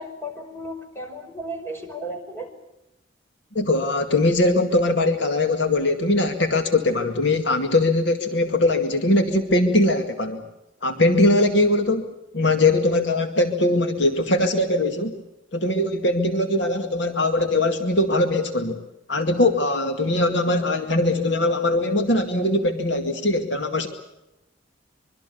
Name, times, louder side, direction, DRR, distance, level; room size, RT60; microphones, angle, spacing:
voice 1, 0.0-2.5, equal, 15° left, 4 dB, 5.3 m, -34 dB
voice 2, 3.5-10.4 10.8-12.1 12.3-15.2 15.5-18.8 19.1-23.9, left 2 dB, 65° left, 6 dB, 2.2 m, -21 dB
25.0 x 24.0 x 7.1 m, 0.93 s
head